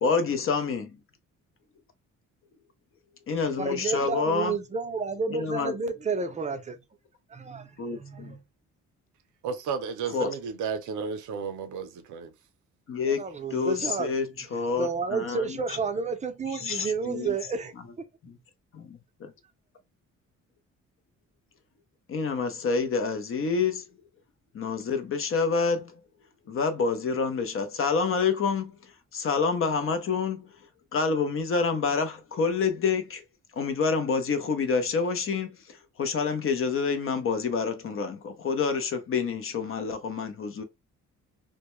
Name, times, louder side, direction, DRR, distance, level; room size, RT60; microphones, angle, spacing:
voice 1, 0.0-1.0 3.3-4.6 5.3-5.7 7.8-8.3 10.1-10.3 12.9-13.2 13.5-15.8 16.5-17.3 18.2-18.4 18.7-19.3 22.1-23.8 24.5-26.0 26.5-30.5 30.9-33.2 33.5-40.6, left 5 dB, 45° left, 0.6 m, -28 dB
voice 2, 3.6-6.8 7.3-8.4 13.1-14.1 14.6-17.7, right 4 dB, 25° right, 0.5 m, -31 dB
voice 3, 9.4-12.3, right 6 dB, 80° right, 0.6 m, -33 dB
2.2 x 2.1 x 2.9 m
cardioid pair, 90°, 30 cm